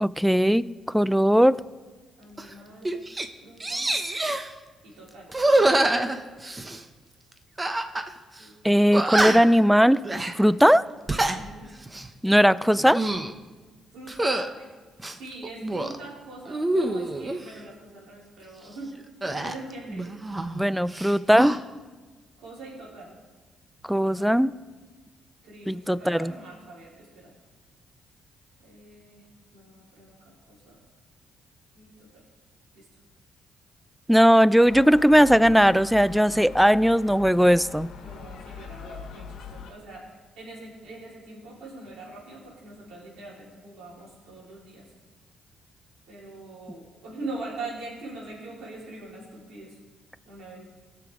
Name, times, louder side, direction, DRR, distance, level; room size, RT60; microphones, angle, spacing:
voice 1, 0.0-1.6 8.6-10.0 10.4-10.8 12.2-13.0 20.5-21.5 23.8-24.5 25.7-26.3 34.1-37.9, equal, ahead, 18 dB, 0.3 m, -19 dB
voice 2, 2.2-3.0 3.4-3.9 4.8-5.5 8.4-8.9 11.3-11.7 12.2-12.6 13.9-14.7 15.1-18.9 19.3-20.1 22.4-23.1 24.0-24.4 25.4-27.3 28.6-30.8 31.7-32.2 32.7-32.9 38.0-44.9 46.1-49.8 50.2-50.6, right 2 dB, 80° right, -5 dB, 4.1 m, -42 dB
sound 1, 2.4-2.5 2.9-3.3 3.6-4.5 5.3-6.8 7.6-8.1 8.4-8.5 8.9-9.6 10.0-10.3 10.9-11.4 11.8-12.1 12.7-13.3 14.1-14.5 15.0-16.0 16.5-17.4 19.2-20.6 20.9-21.6, right 2 dB, 20° right, 0.8 m, -26 dB
Gull seagull, 34.7-39.7, left 6 dB, 75° left, 1.1 m, -42 dB
17.0 x 6.9 x 3.7 m, 1.3 s
cardioid pair, 90°, 0 cm